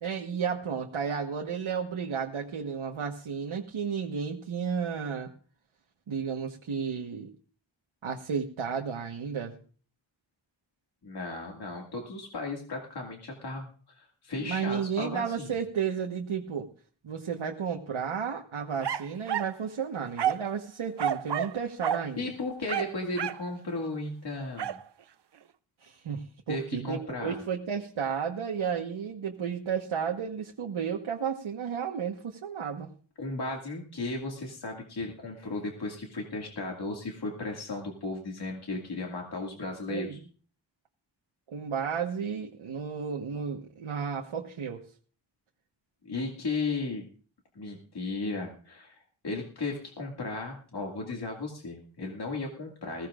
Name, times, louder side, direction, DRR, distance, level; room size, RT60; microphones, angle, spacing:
voice 1, 0.0-5.3 6.1-7.3 8.0-9.6 14.4-16.7 17.0-22.3 25.8-32.9 39.9-40.2 41.5-44.8, right 6 dB, 85° right, 1 dB, 1.4 m, -33 dB
voice 2, 11.0-15.5 22.2-24.8 26.5-27.4 33.2-40.2 46.0-47.0 47.6-49.0 49.2-53.1, left 3 dB, 55° left, 0 dB, 2.3 m, -35 dB
sound 1, 18.8-19.6 20.2-20.5 21.0-21.6 21.8-22.1 22.7-23.5 24.6-24.8, right 9 dB, 60° right, 0.7 m, -30 dB
20.5 x 16.5 x 2.5 m, 0.41 s
wide cardioid pair, 135°, 47 cm